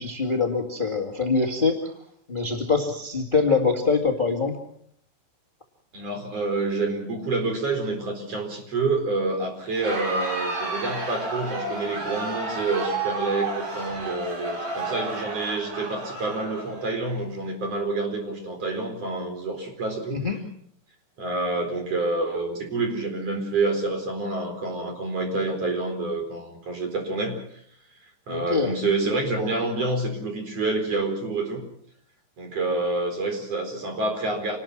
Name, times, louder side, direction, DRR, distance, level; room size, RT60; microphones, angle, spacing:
voice 1, 0.0-1.9 2.3-4.6 20.1-20.4 28.3-28.7, left 4 dB, 55° left, 2 dB, 0.5 m, -24 dB
voice 2, 5.9-20.2 21.2-27.4 28.3-31.6 32.4-34.6, right 3 dB, 35° right, 4 dB, 5.0 m, -28 dB
Crowd, 9.7-17.2, right 2 dB, 90° right, 9.0 m, -31 dB
27.5 x 20.0 x 5.9 m, 0.66 s
omnidirectional pair, 5.1 m